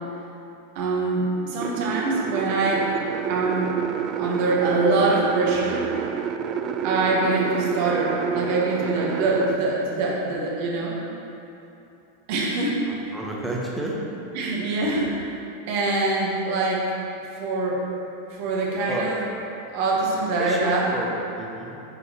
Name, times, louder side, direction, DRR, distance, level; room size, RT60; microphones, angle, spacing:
voice 1, 0.7-2.9 3.3-3.7 4.2-5.9 6.8-11.0 12.3-12.8 14.3-15.1 15.7-16.8 17.3-17.9 18.3-19.2 19.7-20.8, right 3 dB, 50° right, -3 dB, 1.1 m, -24 dB
sound 1, 1.6-9.6, right 8 dB, 35° right, 0.3 m, -28 dB
voice 2, 12.8-14.0 18.7-19.1 20.4-21.8, right 1 dB, 10° right, -3 dB, 1.0 m, -31 dB
10.0 x 4.1 x 3.0 m, 2.9 s
figure-of-eight pair, 90°, 0 cm